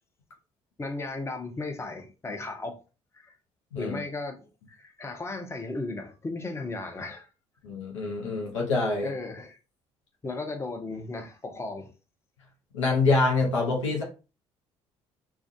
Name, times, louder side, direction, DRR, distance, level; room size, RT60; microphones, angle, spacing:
voice 1, 0.8-2.8 3.1-3.3 3.8-7.3 8.9-9.6 10.2-11.9, left 3 dB, 15° left, 0.6 m, -35 dB
voice 2, 7.6-9.1 12.7-14.0, left 3 dB, 90° left, 0.7 m, -25 dB
2.3 x 2.2 x 2.5 m
hypercardioid pair, 55°, 15 cm